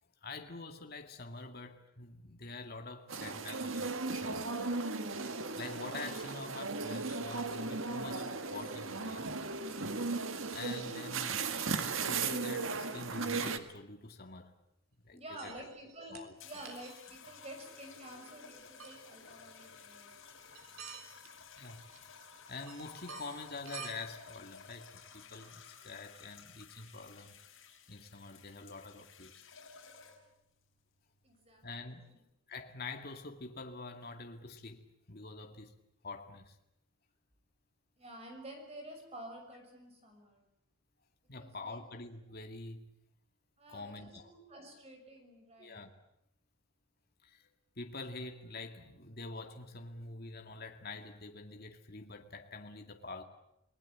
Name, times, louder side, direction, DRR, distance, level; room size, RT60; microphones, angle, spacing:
voice 1, 0.2-4.5 5.6-9.3 10.5-11.4 11.9-14.5 15.0-15.5 16.1-16.3 21.6-21.9 22.5-27.4 27.9-29.4 31.6-32.0 32.5-35.7 36.0-36.6 41.3-42.9 43.7-44.3 45.6-45.9 47.2-47.5 47.8-53.2, left 3 dB, 45° left, 2.1 m, -46 dB
sound 1, 3.1-13.6, right 4 dB, 70° right, 1.8 m, -36 dB
sound 2, 10.5-11.1 12.4-12.5 13.1-13.2 15.3-16.3 16.5-17.0 18.8-19.0 20.5-21.3 21.6-22.3 22.6-23.9, right 6 dB, 90° right, 4.0 m, -49 dB
voice 2, 15.1-20.2 31.2-31.6 32.1-32.2 38.0-40.4 41.4-41.8 43.6-45.8, right 1 dB, 30° right, 6.5 m, -50 dB
sound 3, 16.4-30.4 31.3-31.6, left 6 dB, 70° left, 5.8 m, -55 dB
29.5 x 19.5 x 8.6 m
head